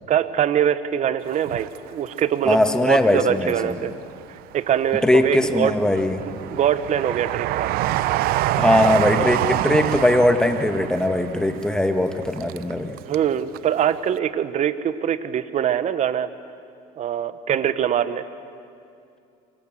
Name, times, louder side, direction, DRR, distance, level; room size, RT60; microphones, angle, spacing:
voice 1, 0.1-3.9 4.5-5.7 6.3-7.7 13.0-16.3 17.0-18.3, right 9 dB, 45° right, 13 dB, 1.5 m, -23 dB
Train, 1.3-2.6 3.0-4.0 4.5-13.3 13.5-13.6, right 14 dB, 65° right, 0.9 m, -27 dB
voice 2, 2.5-3.5 5.0-6.2 8.6-13.0, left 1 dB, 5° left, 6 dB, 2.1 m, -20 dB
29.0 x 24.5 x 7.8 m, 2.5 s
supercardioid pair, 100°, 17 cm